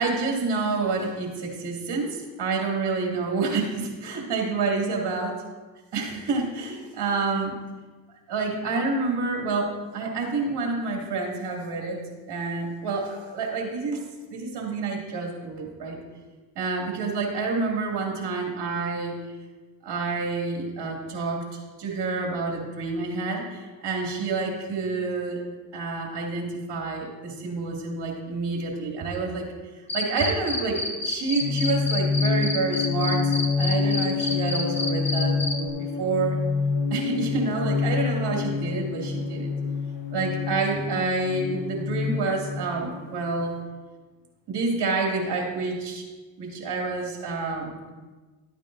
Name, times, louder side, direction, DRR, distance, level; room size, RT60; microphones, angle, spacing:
voice 1, 0.0-5.3 5.9-7.5 8.3-12.0 12.3-14.0 14.3-16.0 16.5-19.2 19.8-25.4 25.7-29.5 29.9-36.4 36.9-39.5 40.1-43.5 44.5-46.1 46.4-47.8, right 3 dB, 55° right, 0 dB, 2.7 m, -28 dB
Cricket, 29.9-35.5, left 2 dB, 15° left, 1.8 m, -28 dB
sound 1, 31.4-43.4, left 5 dB, 70° left, 1.3 m, -27 dB
13.0 x 8.9 x 2.7 m, 1.3 s
cardioid pair, 85°, 47 cm